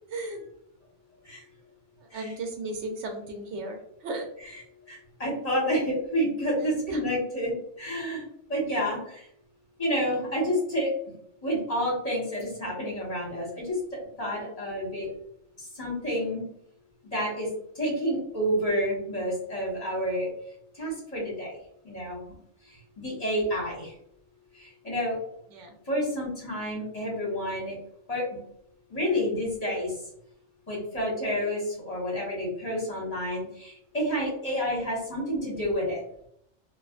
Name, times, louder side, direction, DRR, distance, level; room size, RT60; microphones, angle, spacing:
voice 1, 0.1-0.5 2.1-4.3 6.9-7.0 25.5-25.7, right 2 dB, 75° right, 3 dB, 0.9 m, -35 dB
voice 2, 4.9-9.3 9.8-10.9 11.4-15.1 15.6-16.4 17.0-17.5 17.7-20.3 20.7-21.6 21.8-22.3 22.6-23.9 24.5-25.2 25.8-27.8 28.1-28.4 28.9-30.0 30.7-36.0, equal, 35° left, -6 dB, 1.3 m, -29 dB
3.3 x 2.5 x 2.4 m, 0.73 s
omnidirectional pair, 1.2 m